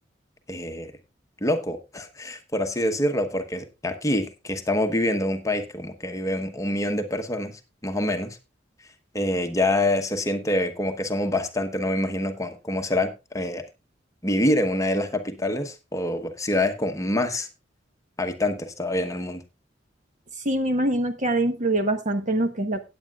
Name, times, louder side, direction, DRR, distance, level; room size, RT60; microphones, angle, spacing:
voice 1, 0.5-0.9 1.4-8.4 9.1-13.6 14.2-17.5 18.2-19.4, left 1 dB, 20° left, 1.0 m, -26 dB
voice 2, 20.4-22.8, right 1 dB, 40° right, 1.1 m, -24 dB
17.0 x 8.7 x 2.4 m
head